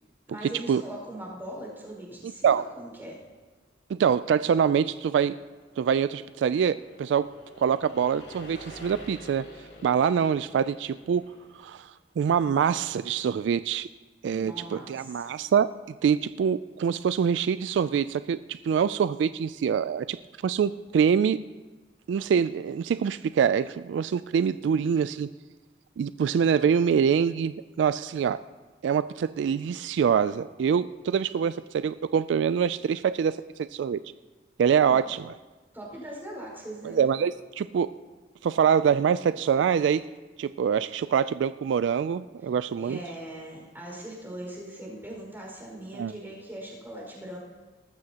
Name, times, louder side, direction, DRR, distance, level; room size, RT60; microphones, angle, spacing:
voice 1, 0.3-3.2 14.3-15.5 34.9-35.0 35.7-37.0 42.8-47.4, right 1 dB, 10° right, -3 dB, 5.1 m, -40 dB
voice 2, 3.9-5.4 5.8-7.3 7.6-9.4 9.8-11.2 11.6-11.9 12.2-13.9 14.2-15.7 16.0-20.2 20.4-21.4 22.1-25.3 26.0-28.4 28.8-33.4 33.7-34.0 34.6-35.2 36.8-37.9 38.4-40.0 40.4-43.0 45.9-46.1, right 7 dB, 80° right, 15 dB, 0.3 m, -25 dB
sound 1, 5.1-11.9, left 1 dB, 75° left, 3.5 m, -49 dB
19.0 x 14.0 x 2.9 m, 1.3 s
head